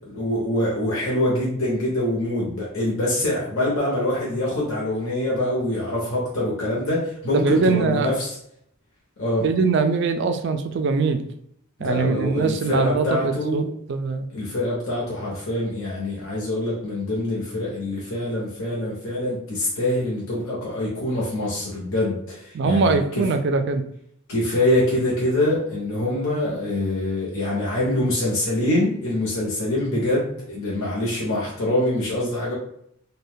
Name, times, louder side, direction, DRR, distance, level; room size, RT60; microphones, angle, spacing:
voice 1, 0.1-8.4 9.2-9.4 11.8-13.6 14.3-23.2 24.3-32.5, left 1 dB, 65° left, -5 dB, 0.8 m, -24 dB
voice 2, 7.3-8.1 9.4-11.2 11.8-14.3 22.5-23.8, right 4 dB, 50° right, 8 dB, 0.3 m, -22 dB
2.6 x 2.2 x 3.5 m, 0.71 s
head